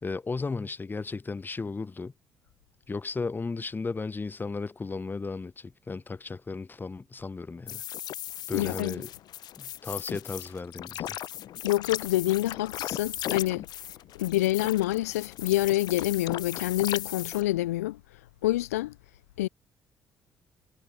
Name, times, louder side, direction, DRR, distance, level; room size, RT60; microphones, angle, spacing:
voice 1, 0.0-2.1 2.9-7.8 8.5-9.1 9.6-11.2, left 4 dB, 25° left, 0.9 m, -35 dB
sound 1, 7.7-17.4, left 12 dB, 60° left, 0.7 m, -37 dB
voice 2, 8.5-9.0 11.6-13.7 14.2-18.0 18.4-18.9 19.4-19.5, left 16 dB, 80° left, 0.4 m, -27 dB
hypercardioid pair, 50°, 8 cm